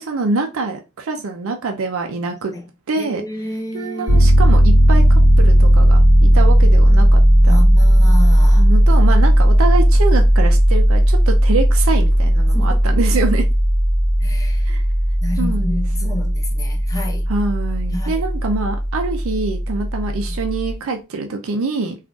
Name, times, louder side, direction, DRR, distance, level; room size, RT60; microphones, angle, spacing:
voice 1, 0.0-2.5 2.9-3.2 3.7-7.6 8.6-13.5 14.7-14.8 15.4-16.4 17.3-22.0, right 3 dB, 70° right, 0.5 m, -25 dB
voice 2, 3.0-4.3 7.4-8.7 12.5-13.2 14.2-14.7 15.2-17.3 17.9-18.2, left 1 dB, 15° left, 0.6 m, -30 dB
Piano, 4.1-20.7, equal, 35° left, 1.8 m, -14 dB
3.7 x 2.4 x 2.3 m
head